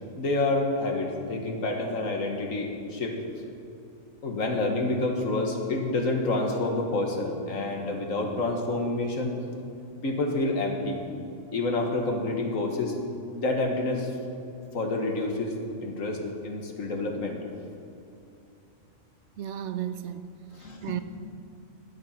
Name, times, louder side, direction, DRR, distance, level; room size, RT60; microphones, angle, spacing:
voice 1, 0.2-3.2 4.2-9.4 10.0-11.0 11.5-13.0 13.3-14.1 14.7-15.5 15.8-17.4 20.5-21.0, left 2 dB, 80° left, 2 dB, 1.9 m, -28 dB
voice 2, 19.4-20.3 20.6-21.0, right 11 dB, 70° right, 11 dB, 0.8 m, -34 dB
13.0 x 8.9 x 5.8 m, 2.6 s
omnidirectional pair, 1.4 m